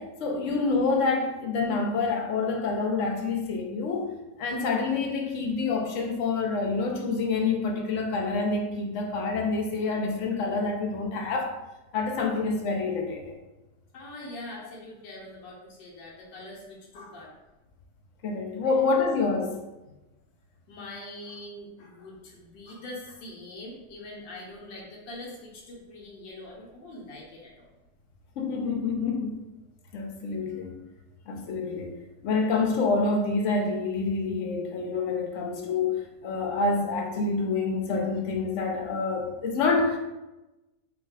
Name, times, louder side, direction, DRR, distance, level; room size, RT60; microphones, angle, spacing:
voice 1, 0.0-4.1 4.4-11.5 11.9-13.2 18.2-19.6 28.4-29.4 29.9-30.8 31.3-31.9 32.2-40.0, left 4 dB, 60° left, 2 dB, 0.8 m, -27 dB
voice 2, 13.9-17.3 18.6-18.9 20.7-27.7, left 1 dB, 90° left, -3 dB, 1.6 m, -43 dB
4.5 x 2.2 x 4.7 m, 1.0 s
omnidirectional pair, 1.9 m